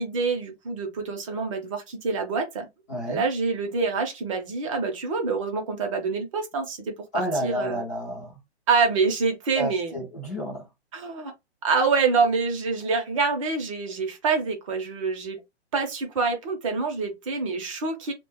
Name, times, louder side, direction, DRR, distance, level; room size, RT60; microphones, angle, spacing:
voice 1, 0.0-2.7 3.1-6.9 7.4-7.8 8.7-10.0 10.9-11.3 11.6-15.4 15.7-18.1, right 4 dB, 30° right, 0.6 m, -26 dB
voice 2, 2.9-3.2 7.1-8.4 9.6-10.6, equal, 15° left, 0.5 m, -30 dB
2.3 x 2.2 x 3.4 m
hypercardioid pair, 155°, 34 cm